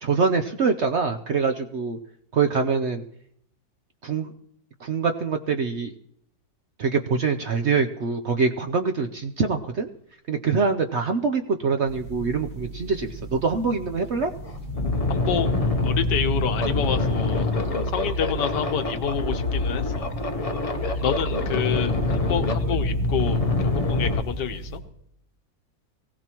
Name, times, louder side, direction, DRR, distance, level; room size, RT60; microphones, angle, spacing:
voice 1, 0.0-2.0 2.3-3.0 4.0-4.3 4.8-5.9 6.8-9.9 10.3-14.3, right 5 dB, 60° right, 5 dB, 0.7 m, -24 dB
sound 1, 11.9-24.8, right 3 dB, 85° right, 4.9 m, -38 dB
sound 2, 13.8-13.9 14.3-24.2, left 2 dB, 35° left, 0.6 m, -25 dB
voice 2, 15.1-15.5 15.8-17.5 17.9-20.1 21.0-24.7, left 8 dB, 75° left, 7 dB, 1.6 m, -28 dB
23.5 x 16.5 x 3.0 m, 0.74 s
omnidirectional pair, 1.9 m